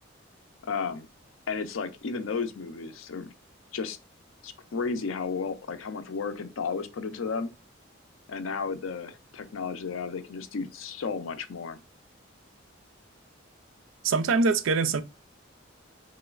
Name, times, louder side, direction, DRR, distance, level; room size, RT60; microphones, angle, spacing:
voice 1, 0.6-1.1 1.5-3.3 3.7-4.0 4.4-7.5 8.3-11.8, left 5 dB, 85° left, 0.5 m, -33 dB
voice 2, 14.0-15.0, right 4 dB, 80° right, 0.4 m, -23 dB
3.1 x 3.0 x 2.3 m
head